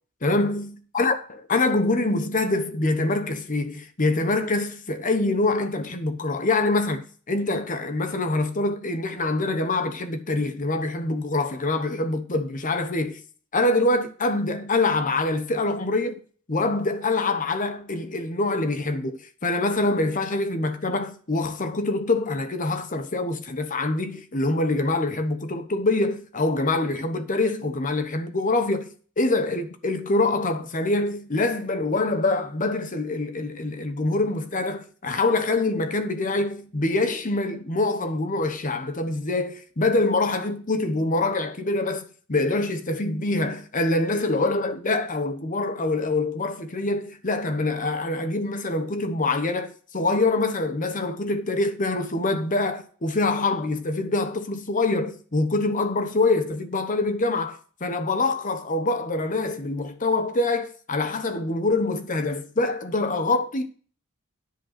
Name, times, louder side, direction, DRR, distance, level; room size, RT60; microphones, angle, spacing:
voice 1, 0.2-1.2 1.5-13.2 13.5-16.2 16.5-63.7, left 2 dB, 40° left, 1.0 m, -25 dB
10.0 x 5.3 x 5.9 m
head